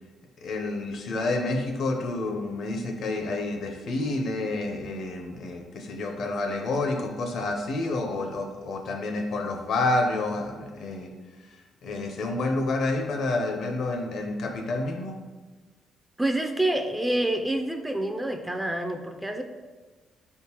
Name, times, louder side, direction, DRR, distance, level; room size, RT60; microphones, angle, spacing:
voice 1, 0.4-11.1 11.8-15.1, left 2 dB, 70° left, 4 dB, 0.6 m, -29 dB
voice 2, 16.2-19.4, right 1 dB, 10° right, 5 dB, 0.3 m, -27 dB
4.1 x 3.6 x 2.9 m, 1.3 s
cardioid pair, 90°, 0 cm